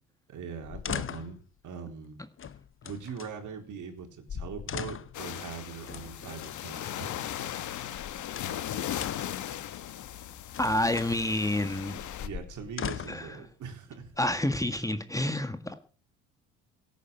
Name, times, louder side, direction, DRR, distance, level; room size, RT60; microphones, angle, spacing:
voice 1, 0.3-2.2 2.8-7.1 12.2-14.1, right 6 dB, 55° right, 4 dB, 4.1 m, -41 dB
sound 1, 0.6-1.4 2.4-3.3 4.0-4.1 4.3-5.2 5.9-6.6 7.7-8.7 9.0-9.4 10.3-11.2 12.0-13.3 14.1-14.8, left 8 dB, 35° left, 1.0 m, -39 dB
sound 2, 5.1-12.3, left 11 dB, 50° left, 1.5 m, -37 dB
voice 2, 10.6-12.0 13.1-13.4 14.2-15.7, left 1 dB, 10° left, 9 dB, 1.7 m, -28 dB
17.0 x 9.3 x 6.5 m, 0.41 s
hypercardioid pair, 65°, 37 cm